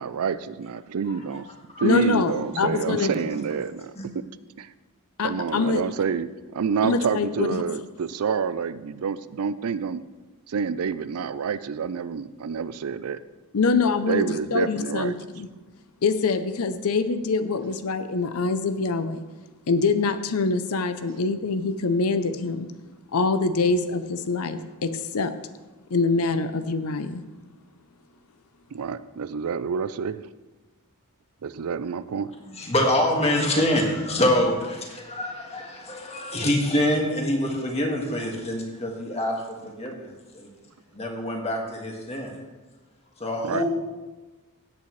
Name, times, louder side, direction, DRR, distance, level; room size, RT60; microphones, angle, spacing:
voice 1, 0.0-1.5 1.8-4.2 4.6-4.7 5.2-10.0 10.5-13.2 14.1-15.1 28.7-30.3 31.4-32.3 39.9-40.0 43.4-43.6, right 6 dB, 75° right, 15 dB, 0.4 m, -28 dB
voice 2, 1.8-3.1 5.2-5.8 6.8-7.6 13.5-15.5 16.0-19.2 19.7-22.7 23.1-25.3 25.9-27.2, left 4 dB, 70° left, 10 dB, 0.6 m, -24 dB
voice 3, 3.0-3.4 4.0-4.1 32.4-39.4 39.6-40.5 40.9-42.3 43.2-43.6, left 1 dB, 30° left, 1 dB, 1.8 m, -26 dB
16.5 x 8.4 x 3.2 m, 1.2 s
head